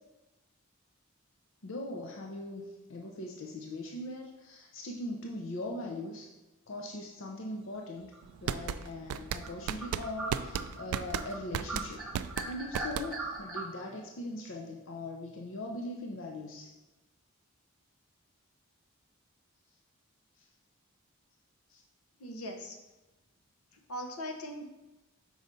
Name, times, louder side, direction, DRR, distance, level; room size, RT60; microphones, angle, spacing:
voice 1, 1.6-2.6 2.9-6.3 6.7-8.1 8.4-12.0 12.5-16.7 21.7-21.8, left 1 dB, 60° left, 0 dB, 0.5 m, -40 dB
sound 1, 8.1-8.5 9.0-9.1 9.4-11.4 11.7-13.6, right 2 dB, ahead, 1.0 m, -39 dB
sound 2, 8.2-13.4, right 8 dB, 90° right, 0.3 m, -35 dB
voice 2, 22.2-22.8 23.7-24.6, equal, 85° left, 3 dB, 0.8 m, -40 dB
5.4 x 4.7 x 3.9 m, 1.0 s
head